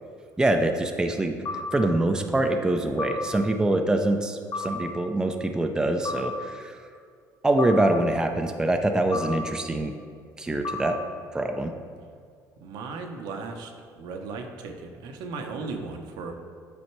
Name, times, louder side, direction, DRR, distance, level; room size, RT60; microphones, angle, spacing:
voice 1, 0.4-1.4 1.7-6.8 7.4-9.9 10.4-11.0 11.3-11.7, right 1 dB, 10° right, 5 dB, 0.5 m, -24 dB
sound 1, 1.5-1.6 3.0-3.2 4.5-4.7 6.1-6.2 7.6-7.8 9.1-9.3 10.6-10.8, left 3 dB, 50° left, 1.1 m, -31 dB
voice 2, 12.6-16.3, right 4 dB, 75° right, 3 dB, 0.8 m, -36 dB
8.5 x 4.3 x 4.6 m, 2.2 s
cardioid pair, 100°, 7 cm